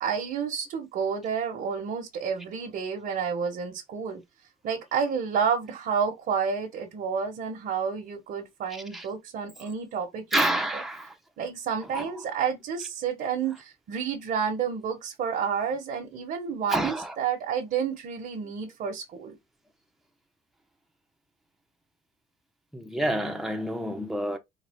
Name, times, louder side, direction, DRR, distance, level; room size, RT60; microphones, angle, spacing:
voice 1, 0.0-4.2 4.6-10.6 11.4-19.3, right 6 dB, 60° right, 1.1 m, -30 dB
voice 2, 10.3-11.1 11.9-12.1 16.7-17.1 22.7-24.4, right 1 dB, ahead, 0.8 m, -28 dB
4.1 x 2.3 x 3.5 m
cardioid pair, 110°, 17 cm